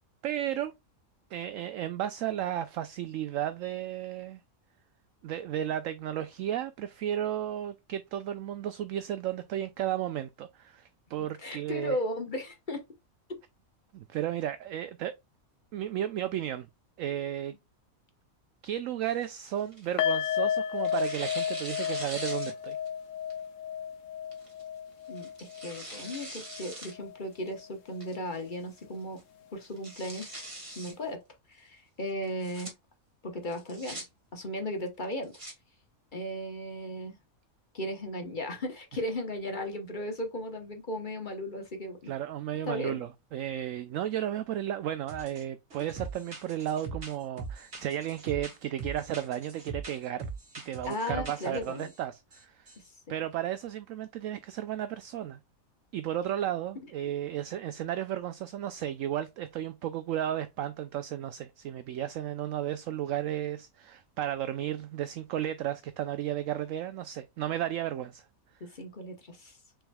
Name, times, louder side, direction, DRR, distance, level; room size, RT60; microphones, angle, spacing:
voice 1, 0.2-0.7 1.3-4.4 5.2-12.0 13.9-15.1 15.7-16.7 17.0-17.5 18.6-22.8 42.0-50.3 50.6-52.7 53.1-55.4 55.9-68.2, right 11 dB, 70° right, 0.9 m, -34 dB
voice 2, 11.4-12.8 25.1-29.2 29.5-30.4 30.8-31.2 31.5-32.7 33.2-34.0 34.3-35.3 36.1-37.2 37.7-42.1 42.6-43.0 50.8-51.9 68.6-69.6, left 1 dB, 35° left, 1.2 m, -36 dB
Tearing, 19.0-20.4 20.8-22.9 23.3-23.4 24.3-24.6 25.2-26.9 27.3-27.4 28.0-28.4 28.8-28.9 29.2-29.3 29.6-30.9 32.2-32.7 33.5-34.0 35.0-35.5, right 1 dB, 25° right, 1.6 m, -43 dB
sound 1, 20.0-27.2 27.4-27.6 28.0-28.1, left 9 dB, 70° left, 1.0 m, -33 dB
sound 2, 45.1-45.4 45.7-52.0 52.3-52.4 52.7-52.9, right 4 dB, 50° right, 2.1 m, -41 dB
6.1 x 3.6 x 2.2 m
omnidirectional pair, 1.5 m